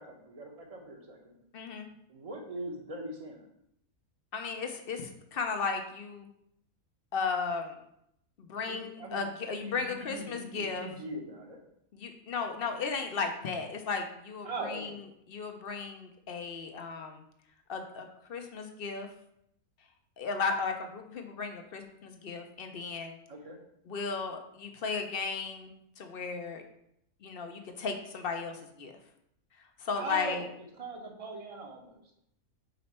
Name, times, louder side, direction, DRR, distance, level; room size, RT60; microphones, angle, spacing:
voice 1, 0.0-1.4 2.1-3.4 8.6-11.6 14.4-15.0 23.3-23.6 29.9-30.4 30.8-32.0, right 2 dB, 30° right, 2 dB, 0.8 m, -41 dB
voice 2, 1.5-1.9 4.3-6.3 7.1-7.8 8.4-10.9 11.9-14.9 15.3-17.2 17.7-19.1 20.2-23.2 23.9-26.6 27.2-29.0 29.8-30.5, left 5 dB, 55° left, 5 dB, 0.7 m, -35 dB
5.3 x 4.2 x 4.3 m, 0.76 s
omnidirectional pair, 1.5 m